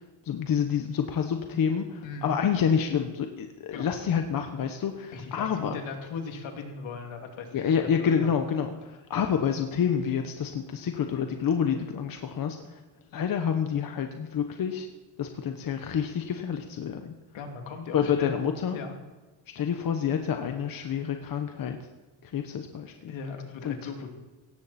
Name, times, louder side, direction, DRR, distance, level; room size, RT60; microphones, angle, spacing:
voice 1, 0.2-5.8 7.5-12.6 13.1-14.9 15.2-17.1 17.9-18.8 19.5-21.8 22.2-23.1 23.6-23.8, left 7 dB, 45° left, 6 dB, 1.1 m, -28 dB
voice 2, 2.0-2.3 3.7-3.9 5.1-8.3 17.3-18.4 18.7-18.9 23.1-24.1, left 4 dB, 75° left, 3 dB, 2.8 m, -38 dB
17.5 x 14.5 x 4.3 m, 1.2 s
cardioid pair, 150°, 46 cm